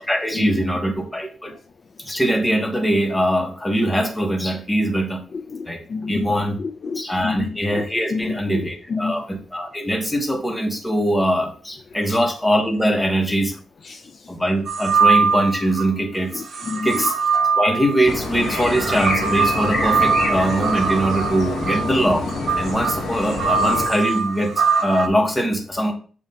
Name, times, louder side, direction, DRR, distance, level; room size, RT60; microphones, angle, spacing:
voice 1, 0.0-1.5 2.0-5.2 5.7-5.8 6.1-6.6 6.9-13.5 14.3-17.1 17.5-22.3 22.5-24.5 24.8-25.9, equal, 10° left, 1.3 m, -22 dB
voice 2, 5.3-7.8 8.1-9.2 12.0-12.2 13.8-14.3 16.3-17.1, left 4 dB, 50° left, 0.4 m, -30 dB
sound 1, 14.7-15.9 16.5-25.1, right 5 dB, 60° right, 1.2 m, -22 dB
sound 2, 18.0-23.9, left 2 dB, 85° left, 1.4 m, -27 dB
7.3 x 2.7 x 5.5 m
cardioid pair, 105°, 0 cm